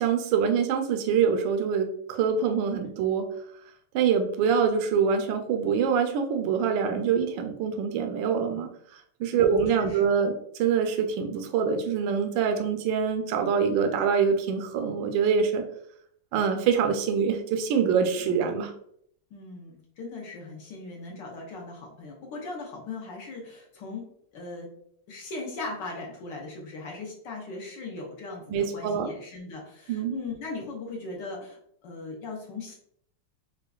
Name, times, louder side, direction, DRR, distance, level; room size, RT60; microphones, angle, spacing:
voice 1, 0.0-3.3 3.9-15.6 16.3-18.7 28.5-29.1 29.9-30.2, right 6 dB, 75° right, 5 dB, 1.1 m, -25 dB
voice 2, 9.3-10.0 19.3-24.1 24.3-24.7 25.1-32.7, left 3 dB, 65° left, -1 dB, 1.2 m, -39 dB
4.8 x 2.2 x 2.3 m, 0.67 s
omnidirectional pair, 2.4 m